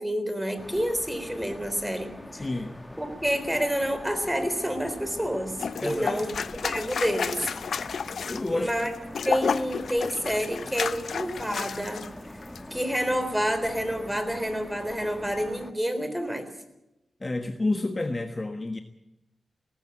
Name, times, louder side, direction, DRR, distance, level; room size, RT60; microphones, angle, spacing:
voice 1, 0.0-2.1 2.4-2.5 3.0-6.4 6.6-7.5 8.5-8.9 9.2-12.1 12.7-16.5, equal, 5° right, 9 dB, 3.8 m, -28 dB
sound 1, 0.6-15.7, left 1 dB, 10° left, 1.6 m, -43 dB
voice 2, 2.3-2.8 5.8-6.3 8.3-8.8 17.2-18.8, left 2 dB, 30° left, 6 dB, 1.4 m, -30 dB
sound 2, 5.6-12.1 12.4-12.6, left 6 dB, 75° left, 0.6 m, -32 dB
18.5 x 15.0 x 10.0 m, 0.93 s
cardioid pair, 70°, 0 cm